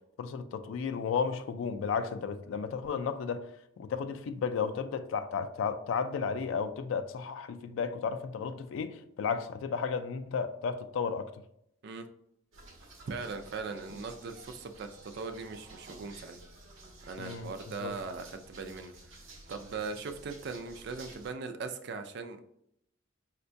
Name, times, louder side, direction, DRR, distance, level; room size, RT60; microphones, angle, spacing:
voice 1, 0.2-3.5 3.8-11.3 17.2-17.5 17.8-17.9, left 6 dB, 75° left, 0.3 m, -33 dB
sound 1, 12.5-21.3, right 2 dB, 85° right, 0.8 m, -52 dB
voice 2, 13.1-16.4 17.0-19.2 19.5-22.4, right 4 dB, 55° right, 0.3 m, -40 dB
4.4 x 2.2 x 2.5 m
head